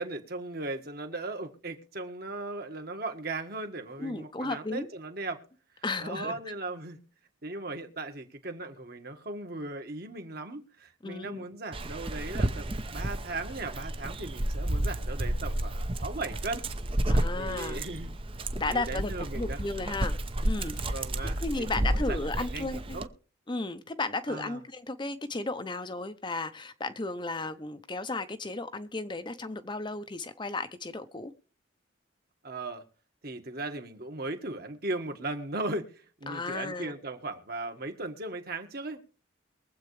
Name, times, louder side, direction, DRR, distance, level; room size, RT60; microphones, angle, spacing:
voice 1, 0.0-5.4 6.0-7.0 7.4-16.7 17.3-18.1 18.7-19.6 20.9-23.1 24.3-24.6 32.4-32.8 33.2-39.0, right 2 dB, 50° right, 1.7 m, -37 dB
voice 2, 4.0-4.9 5.8-6.3 11.0-11.4 17.1-17.8 18.5-20.2 20.4-20.9 21.4-23.0 23.5-31.3 36.3-36.9, left 3 dB, 25° left, 0.7 m, -34 dB
Dog, 11.7-23.1, right 1 dB, 30° right, 0.7 m, -31 dB
23.0 x 8.1 x 3.3 m
head